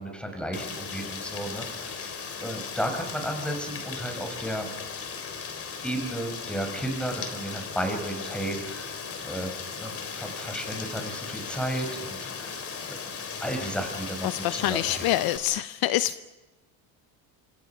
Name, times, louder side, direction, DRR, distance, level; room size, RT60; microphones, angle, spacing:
voice 1, 0.0-4.7 5.8-12.7 13.4-15.0, right 1 dB, ahead, 4 dB, 5.7 m, -33 dB
Rain, 0.5-15.4, left 6 dB, 35° left, 3.6 m, -37 dB
voice 2, 14.2-16.2, left 14 dB, 55° left, 14 dB, 0.8 m, -26 dB
26.5 x 25.5 x 5.9 m, 1.1 s
cardioid pair, 130°, 42 cm